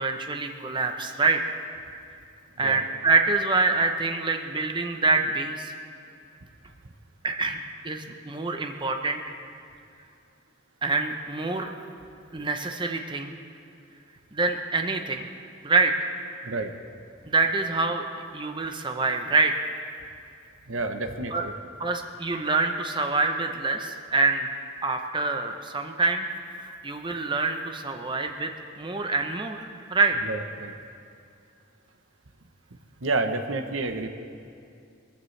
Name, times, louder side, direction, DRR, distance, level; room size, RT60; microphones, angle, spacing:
voice 1, 0.0-1.4 2.6-5.7 7.2-7.6 7.8-9.3 10.8-11.7 12.3-13.4 14.3-15.3 15.6-16.1 17.3-19.5 21.3-21.4 21.8-24.5 24.8-26.3 26.6-28.5 28.8-30.2, right 3 dB, 25° right, 4 dB, 0.8 m, -26 dB
voice 2, 20.7-21.5 30.2-30.7 33.0-34.1, right 3 dB, 90° right, 7 dB, 1.0 m, -29 dB
22.5 x 14.5 x 3.3 m, 2.5 s
head